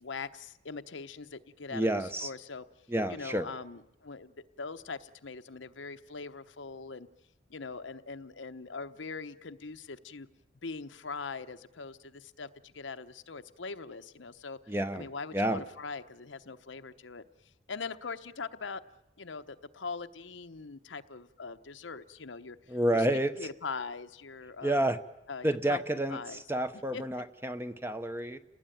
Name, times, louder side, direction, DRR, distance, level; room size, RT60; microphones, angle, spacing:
voice 1, 0.0-2.7 3.1-7.1 7.5-10.3 10.6-17.2 17.7-18.8 19.2-24.8 25.3-25.8 26.1-26.4 26.7-27.0, left 4 dB, 80° left, 9 dB, 0.9 m, -42 dB
voice 2, 1.7-2.3 2.9-3.5 14.7-15.1 15.3-15.6 22.7-23.4 24.6-25.0 25.4-28.4, right 1 dB, 10° right, 10 dB, 0.9 m, -30 dB
29.5 x 19.0 x 9.2 m, 0.98 s
head